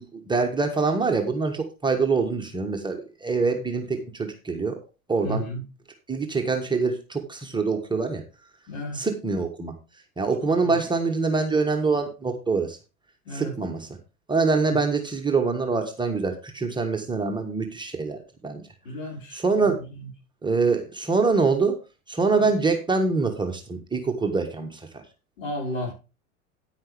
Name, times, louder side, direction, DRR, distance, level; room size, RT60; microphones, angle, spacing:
voice 1, 0.0-4.7 5.1-5.4 6.1-8.2 8.9-9.7 10.2-12.8 13.3-13.9 14.3-18.6 19.3-19.8 20.4-21.8 22.1-25.0, right 4 dB, 10° right, 1.3 m, -25 dB
voice 2, 5.2-5.6 8.7-9.1 10.4-10.8 13.3-13.5 14.7-14.8 18.8-19.7 22.4-22.5 25.4-25.9, left 1 dB, 60° left, 5.7 m, -33 dB
9.8 x 9.5 x 3.5 m
figure-of-eight pair, 90°, 43 cm